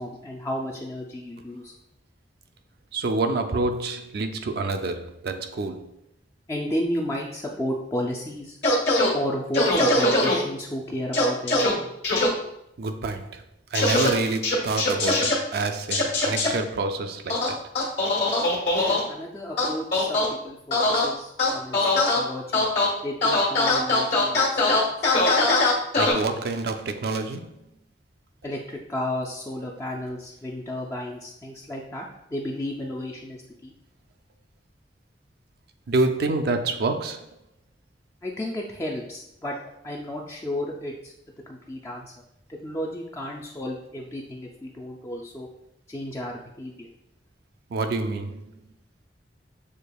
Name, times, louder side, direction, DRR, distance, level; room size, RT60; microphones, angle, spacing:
voice 1, 0.0-1.7 6.5-8.6 9.1-11.9 18.7-22.7 23.0-25.0 28.4-32.1 32.3-33.7 38.2-39.6 39.8-41.1 41.5-42.1 42.5-45.5 45.9-46.9, left 1 dB, 15° left, 0.4 m, -33 dB
voice 2, 2.9-5.9 12.8-13.4 13.7-17.6 26.0-27.5 35.9-37.3 47.7-48.5, right 3 dB, 60° right, 0.4 m, -27 dB
sound 1, 8.6-9.1 9.5-10.3 11.1-11.7 12.0-12.3 13.7-14.1 14.4-15.3 15.9-16.5 17.3-19.0 19.6-20.3 20.7-21.1 21.4-22.2 22.5-22.9 23.2-26.1, left 2 dB, 65° left, 1.3 m, -21 dB
6.4 x 2.7 x 2.3 m
head